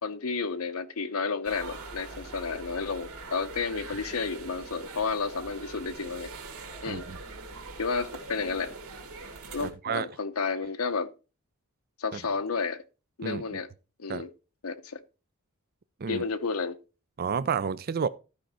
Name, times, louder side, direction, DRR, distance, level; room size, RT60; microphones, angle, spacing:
voice 1, 0.0-6.3 6.8-7.0 7.8-8.7 9.5-11.1 12.0-12.8 13.2-13.7 14.0-14.3 14.6-15.0 16.1-16.8, left 4 dB, 75° left, 0.8 m, -31 dB
sound 1, 1.4-9.7, right 3 dB, 80° right, 2.4 m, -42 dB
voice 2, 6.9-7.2 9.6-10.1 12.1-12.2 13.2-13.6 14.1-14.3 16.0-16.2 17.2-18.1, right 6 dB, 45° right, 0.4 m, -30 dB
13.0 x 5.1 x 4.3 m
head